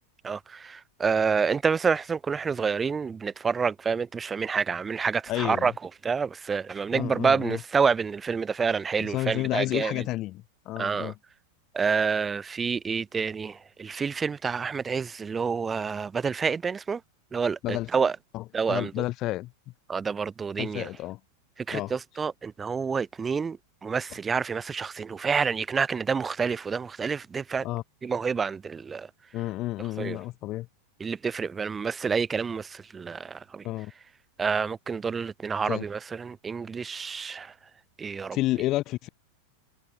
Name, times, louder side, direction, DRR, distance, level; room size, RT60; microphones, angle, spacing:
voice 1, 0.2-5.7 6.0-10.0 10.8-11.1 11.7-17.0 17.3-18.2 18.5-19.0 19.9-20.9 21.6-27.7 28.0-29.1 30.0-30.2 31.0-33.7 34.4-37.5 38.0-38.4, right 5 dB, 15° right, 0.6 m, -28 dB
voice 2, 5.3-5.7 6.9-7.6 9.0-11.1 17.6-17.9 18.3-19.5 20.6-21.2 21.7-21.9 27.6-27.8 29.3-30.7 33.6-33.9 35.7-35.8 38.3-39.1, left 17 dB, 35° left, 0.4 m, -30 dB
figure-of-eight pair, 90°, 0 cm